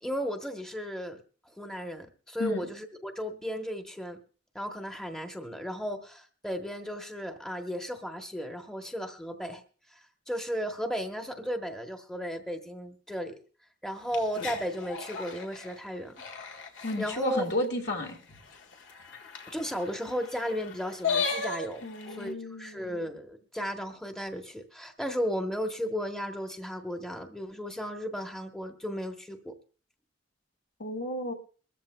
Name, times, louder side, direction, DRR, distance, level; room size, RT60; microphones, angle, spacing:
voice 1, 0.0-1.2 1.6-4.2 4.5-9.6 9.9-13.4 13.8-16.2 17.0-17.4 19.5-21.8 22.1-29.5, equal, 5° left, 4 dB, 0.9 m, -35 dB
sound 1, 14.0-17.2 17.6-17.7 18.0-18.1 18.3-22.3, left 5 dB, 80° left, 1.7 m, -36 dB
voice 2, 16.8-18.2 21.8-23.0 30.8-31.3, left 1 dB, 65° left, 3 dB, 1.9 m, -32 dB
22.5 x 13.5 x 2.2 m, 0.39 s
head